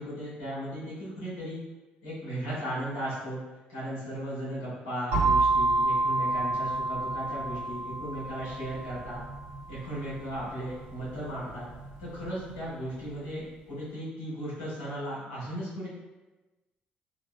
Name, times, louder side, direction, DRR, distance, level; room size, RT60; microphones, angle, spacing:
voice 1, 0.0-1.6 2.0-3.4 3.7-9.2 9.7-11.7 12.0-15.9, right 1 dB, 75° left, -11 dB, 1.3 m, -36 dB
sound 1, 5.1-12.9, right 2 dB, 70° right, 1.2 m, -30 dB
4.1 x 2.8 x 2.2 m, 1.1 s
figure-of-eight pair, 45°, 5 cm